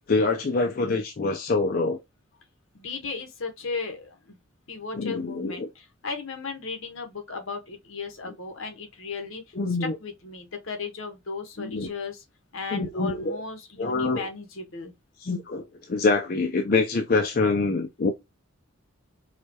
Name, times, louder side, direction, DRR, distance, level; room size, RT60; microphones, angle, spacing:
voice 1, 0.1-2.0 4.9-5.7 9.6-10.0 11.6-11.9 12.7-13.4 13.8-14.3 15.2-18.1, left 3 dB, 45° left, 0.5 m, -25 dB
voice 2, 2.7-4.4 4.7-9.4 9.8-12.2 12.5-14.9, left 4 dB, 70° left, 1.1 m, -36 dB
4.8 x 2.3 x 2.8 m
head